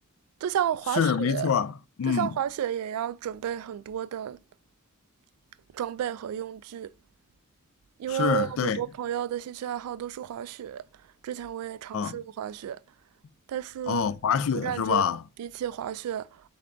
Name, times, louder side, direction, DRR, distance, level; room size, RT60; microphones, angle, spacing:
voice 1, 0.4-1.5 2.1-4.4 5.7-6.9 8.0-10.8 11.2-12.8 13.5-14.0 14.6-15.0 15.4-16.3, right 10 dB, 85° right, 0.3 m, -32 dB
voice 2, 0.9-2.4 8.1-8.8 11.9-12.2 13.9-15.2, left 7 dB, 65° left, 0.4 m, -26 dB
3.7 x 3.3 x 3.7 m
head